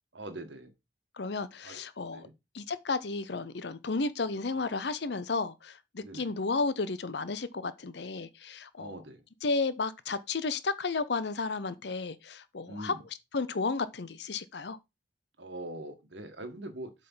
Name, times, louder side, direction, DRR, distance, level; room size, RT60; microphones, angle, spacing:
voice 1, 0.1-0.7 1.6-1.8 2.1-2.3 6.0-6.3 8.8-9.2 12.7-13.0 15.4-16.9, right 1 dB, 80° right, 1.6 m, -42 dB
voice 2, 1.2-2.3 2.5-8.9 9.4-12.9 13.3-14.8, left 4 dB, 70° left, 0.7 m, -33 dB
7.7 x 3.8 x 5.6 m
head